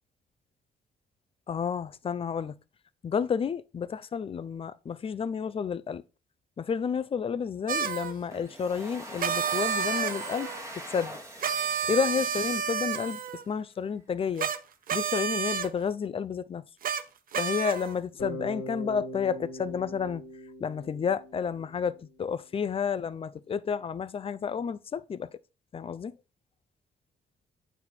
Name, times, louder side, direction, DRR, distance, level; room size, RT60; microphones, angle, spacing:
voice 1, 1.5-2.5 3.0-6.0 6.6-10.5 10.9-11.2 11.9-13.2 13.5-14.5 14.9-16.6 17.4-20.2 20.6-25.3 25.7-26.1, left 6 dB, 30° left, 0.5 m, -31 dB
sound 1, 7.7-8.1 9.2-10.6 11.4-13.4 14.4-14.6 14.9-15.7 16.8-17.0 17.3-17.9, right 7 dB, 50° right, 0.7 m, -30 dB
Domestic sounds home sounds, 8.3-13.3, equal, 15° right, 1.5 m, -43 dB
Bass guitar, 18.2-22.2, equal, 85° left, 2.3 m, -41 dB
9.2 x 4.1 x 4.4 m
cardioid pair, 125°, 18 cm